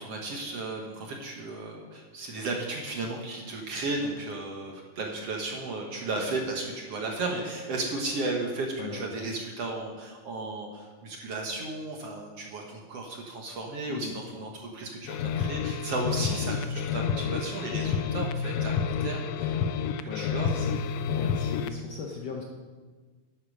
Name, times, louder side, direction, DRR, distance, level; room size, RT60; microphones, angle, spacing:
voice 1, 0.0-18.7 19.0-19.6 20.0-20.6, right 2 dB, 60° right, 0 dB, 1.8 m, -34 dB
voice 2, 8.8-9.1 13.9-14.1 20.0-20.8 21.1-22.4, left 5 dB, 65° left, 0 dB, 1.7 m, -39 dB
sound 1, 15.0-21.8, left 6 dB, 90° left, 2.3 m, -29 dB
10.5 x 8.9 x 6.5 m, 1.4 s
omnidirectional pair, 4.0 m